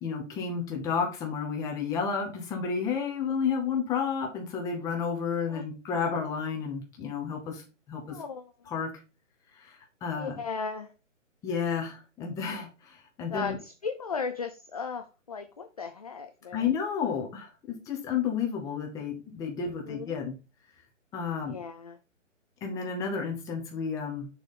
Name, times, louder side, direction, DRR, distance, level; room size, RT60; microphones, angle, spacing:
voice 1, 0.0-7.6 7.9-8.2 8.7-8.9 9.6-10.4 11.4-13.6 16.5-20.3 21.1-21.6 22.6-24.3, left 6 dB, 10° left, 2 dB, 0.9 m, -31 dB
voice 2, 8.1-8.5 10.2-10.9 13.3-16.7 19.8-20.2 21.4-22.0, left 5 dB, 30° left, 7 dB, 0.4 m, -36 dB
6.7 x 3.4 x 5.4 m, 0.31 s
hypercardioid pair, 150°, 38 cm